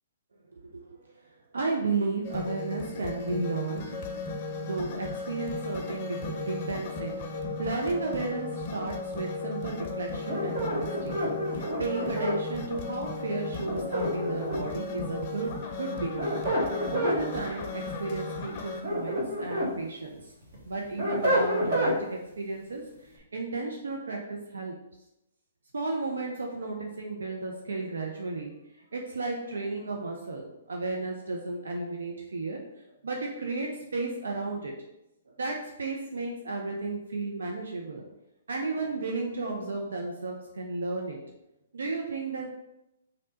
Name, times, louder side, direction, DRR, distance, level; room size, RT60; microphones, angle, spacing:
voice 1, 1.5-4.0 4.6-16.4 16.9-20.3 20.7-22.8 23.1-24.7 25.7-28.5 28.9-32.6 33.0-34.7 35.3-38.0 38.5-41.2 41.7-42.5, right 3 dB, 75° right, 0 dB, 0.5 m, -33 dB
sound 1, 2.2-18.8, left 3 dB, 40° left, 0.5 m, -36 dB
sound 2, 10.3-12.4 13.7-14.8 15.9-17.2 18.6-19.7 20.2-22.0, equal, 55° right, 1.3 m, -28 dB
3.2 x 2.7 x 4.0 m, 0.89 s
figure-of-eight pair, 125°, 0 cm